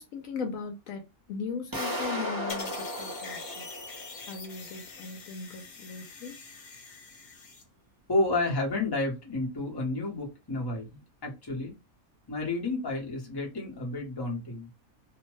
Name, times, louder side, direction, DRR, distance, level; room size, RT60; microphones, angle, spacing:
voice 1, 0.0-3.7 4.3-6.4, left 5 dB, 75° left, 0.9 m, -38 dB
sound 1, 1.7-4.6, equal, 20° right, 0.6 m, -35 dB
sound 2, 2.5-7.6, left 4 dB, 55° left, 0.5 m, -44 dB
voice 2, 8.1-11.7 12.3-14.7, left 2 dB, 20° left, 0.8 m, -31 dB
2.7 x 2.1 x 3.0 m
omnidirectional pair, 1.5 m